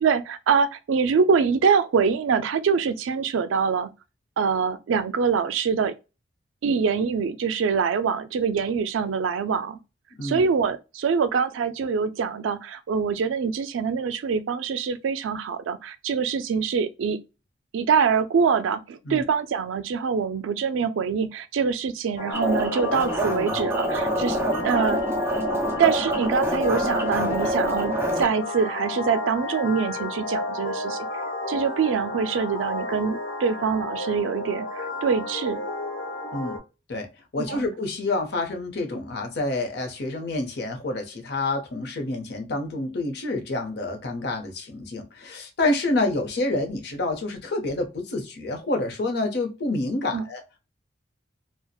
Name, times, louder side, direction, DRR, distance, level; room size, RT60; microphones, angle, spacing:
voice 1, 0.0-3.9 4.4-5.9 6.6-9.8 10.2-17.2 17.7-25.0 25.8-31.1 31.5-35.6 37.4-37.6 50.1-50.2, right 6 dB, 85° right, 0.4 m, -24 dB
sound 1, 22.2-36.6, left 2 dB, 80° left, 1.0 m, -32 dB
sound 2, 22.3-28.3, equal, 15° right, 0.4 m, -26 dB
voice 2, 37.3-50.4, left 2 dB, 60° left, 0.6 m, -28 dB
2.7 x 2.0 x 2.3 m
head